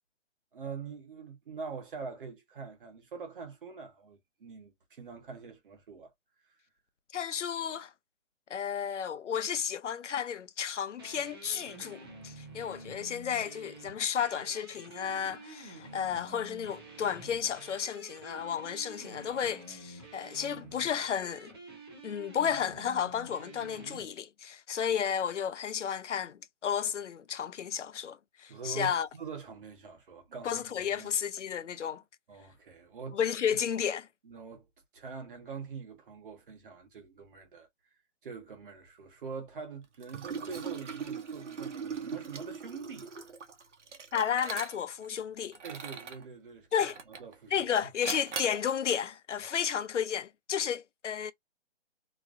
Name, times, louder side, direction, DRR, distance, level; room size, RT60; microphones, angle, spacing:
voice 1, 0.5-6.1 28.5-30.7 31.0-31.1 32.3-33.2 34.2-34.7 34.9-37.7 38.2-43.1 45.6-47.7, right 5 dB, 45° right, 1.2 m, -44 dB
voice 2, 7.1-7.9 8.5-21.6 22.0-29.1 30.4-32.0 33.1-34.1 44.1-45.6 46.7-47.0 47.5-51.3, left 8 dB, 90° left, 0.6 m, -32 dB
sound 1, 11.0-24.1, right 2 dB, 20° right, 0.6 m, -49 dB
Liquid, 40.0-45.1 45.5-46.2 46.8-47.3 48.0-48.6, right 5 dB, 80° right, 1.0 m, -40 dB
3.0 x 2.4 x 2.5 m
hypercardioid pair, 160°, 35 cm